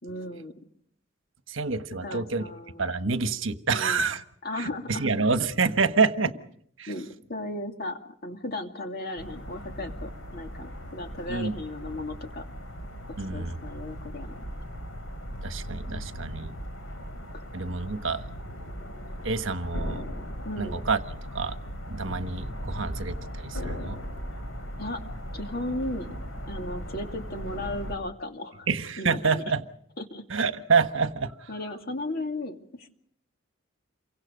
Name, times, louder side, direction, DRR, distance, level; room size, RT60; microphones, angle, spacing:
voice 1, 0.0-0.5 2.0-2.9 3.7-4.1 4.4-5.2 6.9-12.4 13.1-14.5 17.3-17.4 20.4-20.8 24.8-25.0 25.3-26.1 26.5-28.7 29.0-29.4 30.0-30.2 31.5-32.9, left 1 dB, 45° left, 4 dB, 2.6 m, -36 dB
voice 2, 1.5-2.4 2.8-4.2 4.6-6.3 6.8-6.9 11.3-11.5 13.2-13.6 15.4-16.5 17.5-18.2 19.2-20.0 20.6-21.0 21.3-21.6 21.9-24.0 28.7-29.6 30.3-31.3, right 4 dB, 65° right, 10 dB, 1.3 m, -27 dB
sound 1, 9.2-28.0, equal, 80° left, 4.1 m, -38 dB
28.5 x 24.0 x 5.3 m, 0.66 s
head